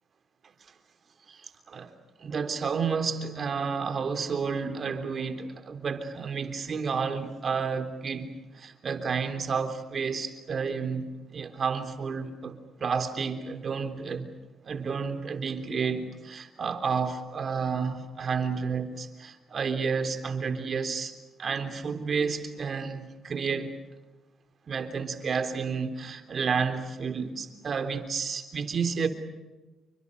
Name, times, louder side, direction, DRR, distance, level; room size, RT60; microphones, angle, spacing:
voice 1, 2.2-11.0 11.3-14.3 14.6-23.8 24.7-29.1, right 5 dB, 50° right, 8 dB, 3.5 m, -31 dB
29.5 x 24.5 x 6.7 m, 1.1 s
cardioid pair, 90°, 0 cm